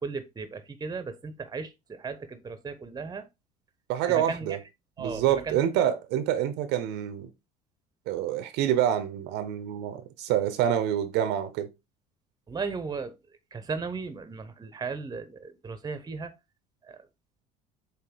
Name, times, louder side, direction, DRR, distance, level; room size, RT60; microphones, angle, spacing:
voice 1, 0.0-3.3 4.1-4.5 5.0-5.7 12.5-13.2 13.5-16.3 16.8-17.0, right 4 dB, 20° right, 1.0 m, -36 dB
voice 2, 3.9-4.6 5.0-7.3 8.1-11.7, right 10 dB, 55° right, 0.9 m, -27 dB
7.9 x 3.0 x 4.6 m
figure-of-eight pair, 65°, 20 cm